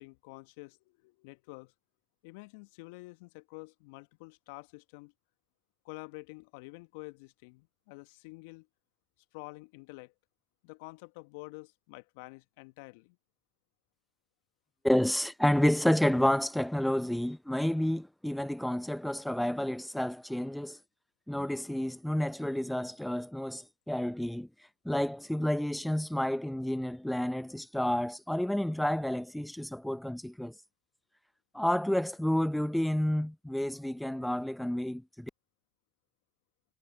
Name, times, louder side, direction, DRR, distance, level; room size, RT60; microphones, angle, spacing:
voice 1, 0.0-1.7 2.2-5.1 5.8-8.7 9.3-10.1 10.6-13.2, left 26 dB, 65° left, 1.3 m, -48 dB
voice 2, 14.8-20.8 21.3-24.5 24.8-30.5 31.5-35.3, left 1 dB, 5° left, 0.8 m, -30 dB
hypercardioid pair, 75°, 0 cm